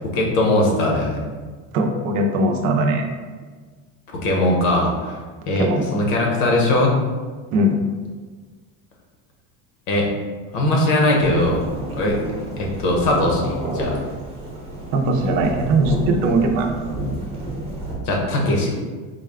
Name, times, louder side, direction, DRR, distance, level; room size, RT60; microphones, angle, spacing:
voice 1, 0.1-1.2 4.1-5.2 5.5-7.0 9.9-10.1 10.5-11.6 12.0-12.2 12.6-14.0 18.0-18.7, left 1 dB, 75° left, -1 dB, 1.0 m, -20 dB
voice 2, 1.7-3.1 5.6-5.9 7.5-7.8 14.9-16.8, right 2 dB, 60° right, 3 dB, 0.6 m, -20 dB
Thunderstorm / Rain, 11.2-18.0, right 1 dB, 15° right, 0.8 m, -30 dB
4.1 x 2.3 x 3.4 m, 1.4 s
cardioid pair, 155°, 35 cm